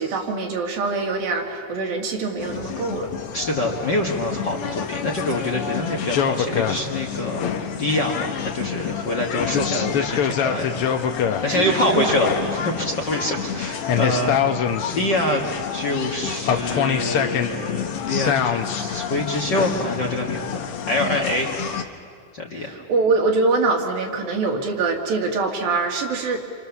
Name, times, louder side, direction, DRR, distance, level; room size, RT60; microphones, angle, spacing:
voice 1, 0.0-3.1 11.5-12.1 22.5-26.5, right 3 dB, 85° right, 2 dB, 4.0 m, -24 dB
sound 1, 2.4-21.8, left 8 dB, 70° left, 1.3 m, -26 dB
voice 2, 3.3-7.4 7.8-10.7 11.4-15.4 15.7-20.6 20.9-21.5 22.3-22.7, left 1 dB, 45° left, 1 dB, 1.6 m, -25 dB
28.0 x 27.0 x 7.1 m, 2.1 s
omnidirectional pair, 4.1 m